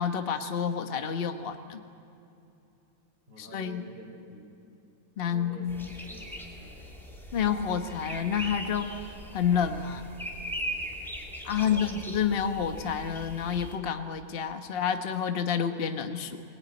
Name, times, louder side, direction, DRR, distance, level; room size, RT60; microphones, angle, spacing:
voice 1, 0.0-1.8 3.4-3.8 5.2-5.9 7.3-10.0 11.4-16.4, left 7 dB, 35° left, 6 dB, 1.2 m, -29 dB
voice 2, 3.3-4.5 5.3-5.7 6.0-6.9 11.6-12.0 12.5-12.6, right 1 dB, 25° right, 1 dB, 4.4 m, -48 dB
sound 1, 5.7-13.8, equal, ahead, 2.8 m, -40 dB
22.0 x 21.5 x 9.5 m, 2.8 s
omnidirectional pair, 1.9 m